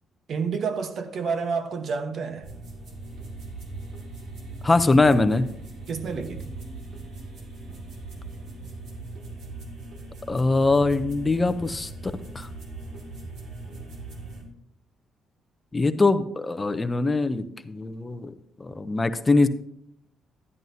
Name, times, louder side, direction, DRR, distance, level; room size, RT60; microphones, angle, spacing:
voice 1, 0.3-2.5 5.9-6.4, right 5 dB, 60° right, 1.0 m, -29 dB
sound 1, 2.4-14.4, right 2 dB, 75° right, 2.2 m, -39 dB
voice 2, 4.6-5.5 10.3-11.9 12.3-12.5 15.7-18.3 18.6-19.5, left 3 dB, 20° left, 0.5 m, -22 dB
11.0 x 10.5 x 2.7 m
cardioid pair, 90°, 0 cm